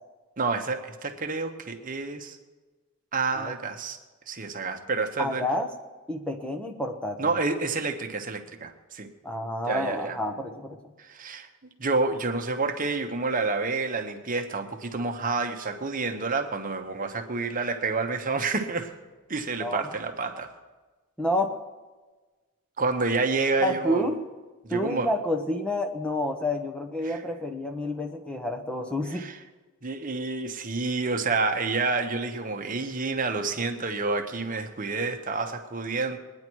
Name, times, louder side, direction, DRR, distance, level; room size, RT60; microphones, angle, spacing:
voice 1, 0.4-2.4 3.1-4.0 4.3-5.4 7.2-9.1 9.7-10.2 11.0-11.5 11.8-18.9 19.3-20.5 22.8-24.1 24.6-25.1 27.0-27.2 29.1-29.4 29.8-36.2, right 3 dB, 40° right, 5 dB, 1.1 m, -29 dB
voice 2, 5.2-5.7 6.1-7.3 9.2-10.9 19.6-19.9 21.2-21.5 23.6-24.2 24.7-29.3, left 1 dB, 5° left, 4 dB, 1.0 m, -29 dB
22.0 x 9.7 x 4.6 m, 1.3 s
head